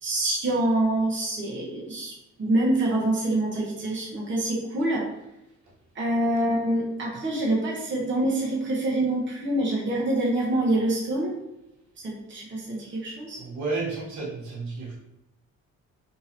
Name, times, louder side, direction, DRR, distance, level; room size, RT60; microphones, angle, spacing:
voice 1, 0.0-2.1 2.4-5.1 5.9-11.3 12.0-13.4, right 1 dB, 40° right, -5 dB, 1.2 m, -26 dB
voice 2, 13.3-14.9, right 3 dB, 70° right, -5 dB, 1.3 m, -31 dB
3.7 x 2.8 x 2.9 m, 0.89 s
cardioid pair, 90°, 30 cm